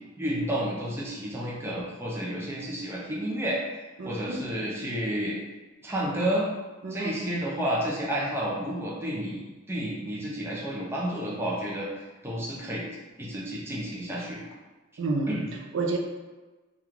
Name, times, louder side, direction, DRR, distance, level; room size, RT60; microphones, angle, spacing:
voice 1, 0.2-3.6 4.0-5.4 5.8-6.5 6.9-9.4 9.7-12.9 13.2-14.4 15.3-15.4, equal, 10° right, -5 dB, 0.5 m, -30 dB
voice 2, 4.0-4.4 6.8-7.3 15.0-16.0, right 3 dB, 70° right, 1 dB, 0.4 m, -30 dB
2.9 x 2.3 x 3.6 m, 1.2 s
head